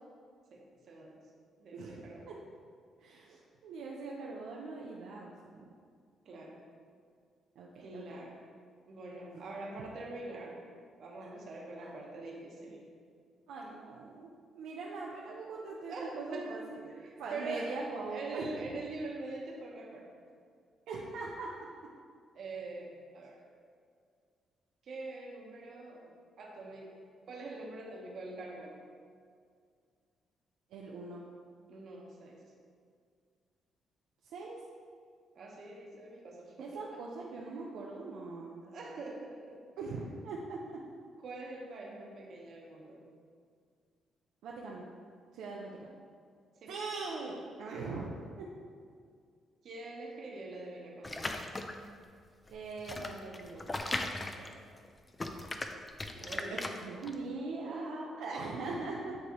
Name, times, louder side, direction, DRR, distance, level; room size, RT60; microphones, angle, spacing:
voice 1, 0.5-1.2 1.6-2.4 6.2-6.6 7.8-8.4 8.9-10.6 11.0-12.9 15.9-16.6 16.9-17.8 18.1-20.1 22.3-23.4 24.8-28.8 31.7-32.4 35.3-36.9 38.6-39.9 41.2-43.1 46.6-46.8 49.6-51.6 54.4-54.6 56.1-56.8 57.6-58.0, right 2 dB, 60° right, -1 dB, 1.2 m, -44 dB
voice 2, 3.0-5.6 7.6-8.0 9.3-9.4 11.8-11.9 13.5-14.3 14.5-16.9 17.2-18.5 20.9-21.5 30.7-31.2 34.3-34.6 36.6-38.6 39.8-40.6 44.4-44.8 45.3-45.9 46.7-48.5 52.5-53.6 56.5-59.2, right 3 dB, 85° right, -3 dB, 0.6 m, -41 dB
sound 1, 51.0-51.9 52.5-54.9 55.1-57.1, left 2 dB, 25° left, 0.4 m, -38 dB
9.5 x 3.4 x 3.0 m, 2.1 s
cardioid pair, 90°, 0 cm